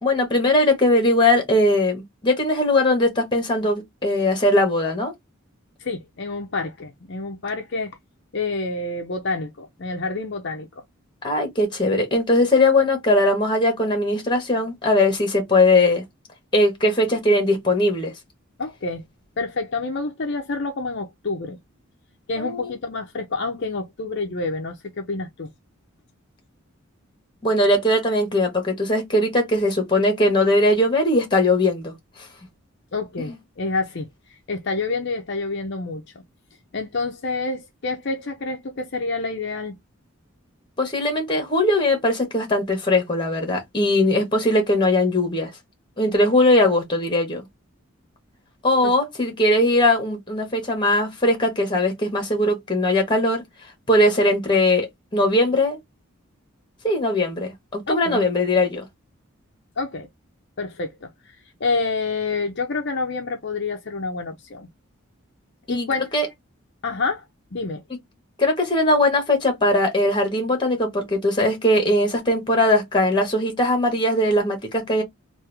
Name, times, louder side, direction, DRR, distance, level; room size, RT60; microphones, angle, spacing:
voice 1, 0.0-5.1 11.2-16.0 16.5-18.1 22.4-22.7 27.4-31.9 33.2-33.4 40.8-45.5 46.0-47.4 48.6-53.4 53.9-54.9 55.1-55.8 56.8-58.8 65.7-66.3 68.4-75.0, left 1 dB, 20° left, 1.5 m, -20 dB
voice 2, 5.8-8.0 8.3-10.8 18.6-19.0 19.4-21.6 22.3-25.5 32.9-36.2 36.7-39.8 48.8-48.9 57.9-58.3 59.8-60.1 60.6-64.7 65.7-66.1 66.8-67.2 67.5-67.8, left 3 dB, 55° left, 0.7 m, -28 dB
3.5 x 2.6 x 3.3 m
head